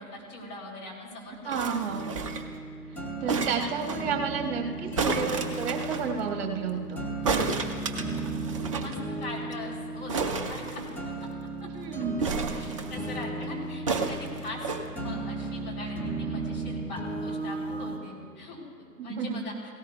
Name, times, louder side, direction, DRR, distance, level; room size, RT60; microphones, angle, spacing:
voice 1, 0.0-1.7 3.1-3.7 8.1-8.3 8.7-8.9 9.2-10.8 12.5-19.7, left 2 dB, 25° left, -3 dB, 3.4 m, -41 dB
voice 2, 1.4-2.1 3.2-7.1 11.7-12.2 19.0-19.4, right 6 dB, 40° right, 1 dB, 1.7 m, -31 dB
sound 1, 1.5-2.6 3.3-4.0 4.9-6.1 7.2-8.9 9.2-9.3 9.5-9.7 10.1-11.3 12.2-13.1 13.9-14.8 15.6-15.7, right 4 dB, 25° right, 0.4 m, -31 dB
sound 2, 1.9-18.0, right 2 dB, 5° left, 0.8 m, -35 dB
18.0 x 17.0 x 2.3 m, 2.2 s
figure-of-eight pair, 115°, 47 cm